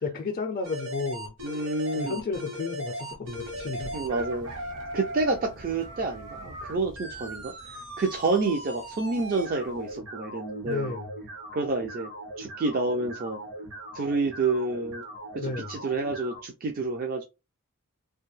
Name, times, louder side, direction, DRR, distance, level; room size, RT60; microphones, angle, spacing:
voice 1, 0.0-1.3 1.9-3.9 10.6-11.1 15.4-15.8, left 4 dB, 40° left, 0.4 m, -32 dB
sound 1, 0.6-16.4, right 1 dB, 65° right, 1.1 m, -39 dB
voice 2, 1.4-2.2 3.9-4.5 4.9-10.9 11.5-12.1 12.4-13.4 13.9-15.0 15.3-17.2, right 3 dB, 40° right, 0.4 m, -29 dB
Thunder, 3.3-10.0, equal, 85° right, 1.1 m, -49 dB
2.5 x 2.3 x 3.1 m
head